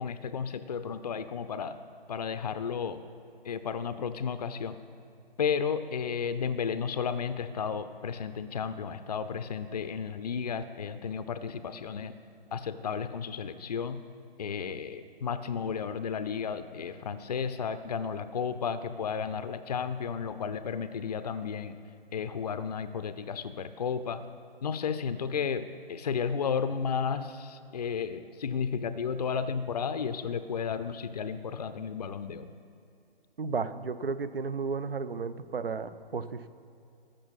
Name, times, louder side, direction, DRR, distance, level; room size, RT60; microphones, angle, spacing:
voice 1, 0.0-1.8 2.1-3.0 3.4-4.8 5.4-12.1 12.5-14.0 14.4-21.8 22.1-24.2 24.6-32.5, left 6 dB, 45° left, 12 dB, 0.5 m, -33 dB
voice 2, 33.4-36.5, right 4 dB, 70° right, 14 dB, 0.7 m, -33 dB
13.5 x 6.7 x 5.7 m, 2.6 s
figure-of-eight pair, 135°, 30 cm